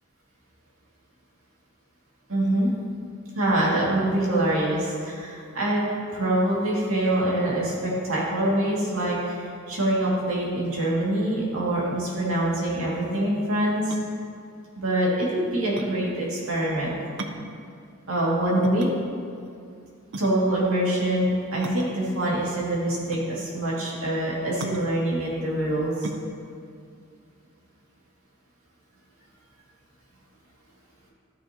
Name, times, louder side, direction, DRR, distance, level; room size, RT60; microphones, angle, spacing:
voice 1, 2.3-2.7 3.3-5.9 6.1-14.0 14.7-16.9 18.1-18.9 20.2-26.1, right 1 dB, 90° right, -5 dB, 2.3 m, -25 dB
sound 1, 13.9-28.1, right 2 dB, 60° right, 0.6 m, -40 dB
13.0 x 6.8 x 2.9 m, 2.4 s
head